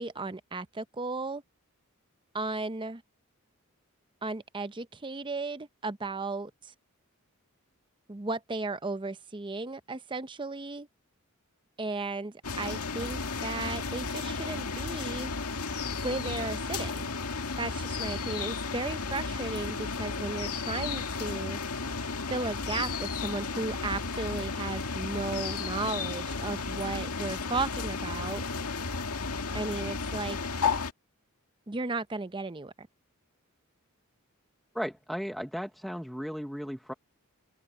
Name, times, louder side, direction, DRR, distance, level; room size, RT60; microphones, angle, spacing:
voice 1, 0.0-1.4 2.3-3.0 4.2-6.7 8.1-10.9 11.8-15.3 16.0-17.1 17.6-21.6 22.3-28.4 29.5-30.4 31.7-32.9, right 3 dB, 20° right, 0.6 m, -35 dB
sound 1, 12.4-30.9, left 4 dB, 85° left, 2.0 m, -33 dB
voice 2, 34.7-36.9, equal, ahead, 0.9 m, -35 dB
open air
head